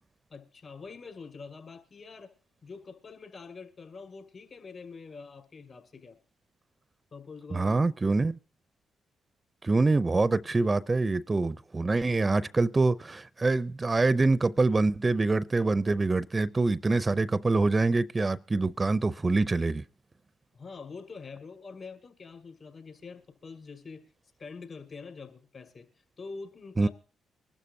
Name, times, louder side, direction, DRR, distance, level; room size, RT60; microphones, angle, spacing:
voice 1, 0.3-2.3 2.6-6.2 7.1-7.7 20.5-24.1 24.4-25.9 26.2-26.9, left 4 dB, 55° left, 5.7 m, -45 dB
voice 2, 7.5-8.4 9.6-19.8 26.8-26.9, right 3 dB, 30° right, 0.6 m, -25 dB
24.5 x 12.5 x 2.7 m
hypercardioid pair, 45°, 0 cm